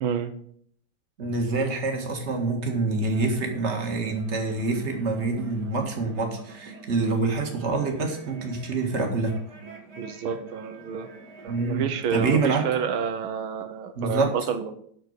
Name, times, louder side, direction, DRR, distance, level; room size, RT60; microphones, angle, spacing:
voice 1, 0.0-0.3 10.0-11.1 11.4-14.7, right 7 dB, 90° right, 9 dB, 1.7 m, -29 dB
voice 2, 1.2-9.3 11.5-12.7 14.0-14.3, right 3 dB, 35° right, 2 dB, 2.0 m, -26 dB
sound 1, 3.0-12.8, right 6 dB, 55° right, 2.3 m, -44 dB
12.0 x 4.4 x 7.9 m, 0.65 s
omnidirectional pair, 2.2 m